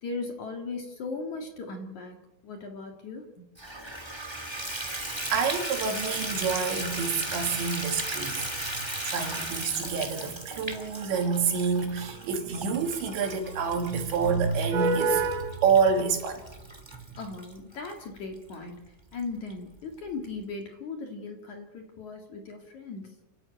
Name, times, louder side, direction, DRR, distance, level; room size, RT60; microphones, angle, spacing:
voice 1, 0.0-3.5 17.2-23.2, left 3 dB, 50° left, 2.6 m, -38 dB
Water tap faucet / Bathtub (filling or washing), 3.6-17.9 18.5-18.6 19.1-19.2 19.5-19.6, right 1 dB, 15° right, 0.9 m, -36 dB
voice 2, 5.3-16.5 16.9-17.0, right 5 dB, 75° right, 4.7 m, -27 dB
29.5 x 13.5 x 8.9 m
omnidirectional pair, 5.2 m